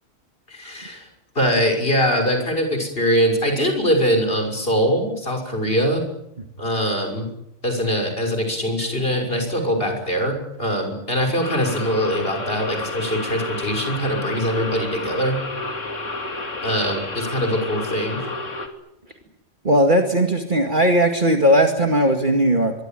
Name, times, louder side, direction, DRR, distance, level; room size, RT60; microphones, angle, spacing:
voice 1, 0.5-1.1 1.3-6.0 6.6-7.3 7.6-15.4 16.6-18.2, equal, 50° left, 4 dB, 6.5 m, -22 dB
sound 1, 11.4-18.7, left 2 dB, 80° left, 3.2 m, -30 dB
voice 2, 19.6-22.7, equal, 40° right, 4 dB, 2.3 m, -17 dB
24.5 x 23.0 x 9.2 m, 0.85 s
omnidirectional pair, 1.3 m